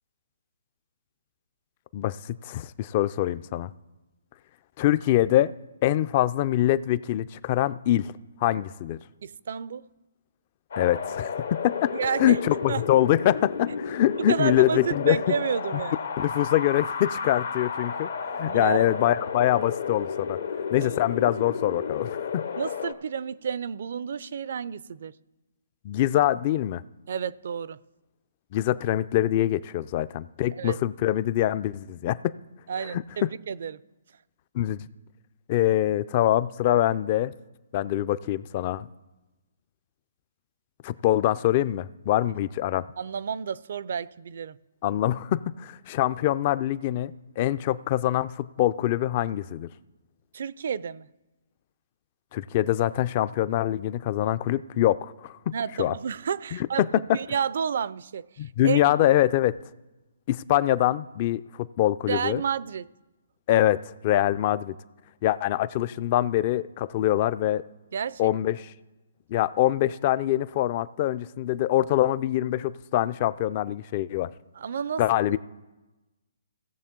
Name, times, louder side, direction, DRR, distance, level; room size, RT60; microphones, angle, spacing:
voice 1, 1.9-3.7 4.8-5.5 5.8-8.1 8.4-9.0 10.8-11.9 12.2-15.2 16.2-18.1 18.4-20.4 20.7-22.4 25.8-26.8 28.5-32.2 32.9-33.3 34.5-34.8 35.5-37.3 37.7-38.9 40.8-42.9 44.8-49.7 52.3-55.9 56.5-56.6 58.4-59.6 60.3-62.4 63.5-64.7 65.2-67.6 68.2-68.6 69.3-74.3 75.0-75.4, left 13 dB, 35° left, 0.4 m, -24 dB
voice 2, 9.2-9.8 11.9-12.4 12.7-12.8 14.2-16.0 18.3-19.0 20.8-20.9 22.6-25.1 27.1-27.8 30.6-30.8 32.7-33.8 43.0-44.6 50.3-51.1 55.5-58.2 58.6-58.8 62.1-62.8 67.9-68.3 74.6-75.0 75.3-75.4, right 7 dB, 60° right, 0.4 m, -30 dB
Wind, 10.7-22.9, left 6 dB, 65° left, 0.8 m, -32 dB
17.0 x 6.7 x 3.7 m
hypercardioid pair, 140°, 0 cm